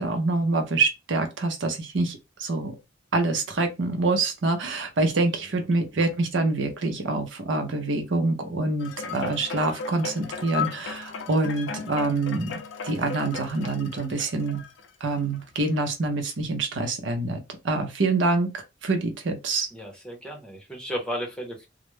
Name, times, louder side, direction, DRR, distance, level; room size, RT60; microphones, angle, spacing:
voice 1, 0.0-2.8 3.1-14.6 15.0-19.7, right 3 dB, 70° right, 0.7 m, -26 dB
sound 1, 8.8-15.4 15.9-16.0, left 5 dB, 70° left, 0.4 m, -36 dB
voice 2, 19.7-21.7, equal, 5° left, 0.8 m, -34 dB
2.4 x 2.0 x 3.1 m
head